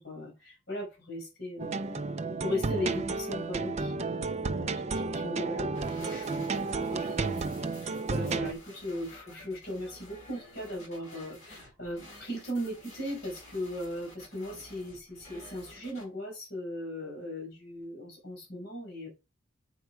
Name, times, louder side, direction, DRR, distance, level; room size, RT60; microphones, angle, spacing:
voice 1, 0.0-2.0 2.4-6.6 6.9-7.4 7.8-19.1, left 1 dB, 55° left, -1 dB, 5.3 m, -38 dB
sound 1, 1.6-8.5, right 3 dB, 35° right, 0.4 m, -32 dB
sound 2, 5.7-16.0, left 1 dB, 35° left, 5.4 m, -51 dB
8.9 x 4.5 x 4.8 m, 0.28 s
head